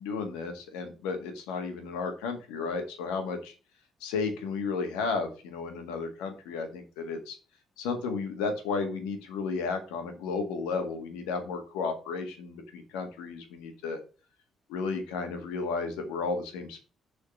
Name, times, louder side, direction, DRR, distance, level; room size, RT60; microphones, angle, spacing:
voice 1, 0.0-3.5 4.0-7.4 7.8-14.0 14.7-16.8, left 4 dB, 85° left, 5 dB, 1.7 m, -33 dB
6.8 x 4.3 x 6.4 m, 0.34 s
hypercardioid pair, 50°, 0 cm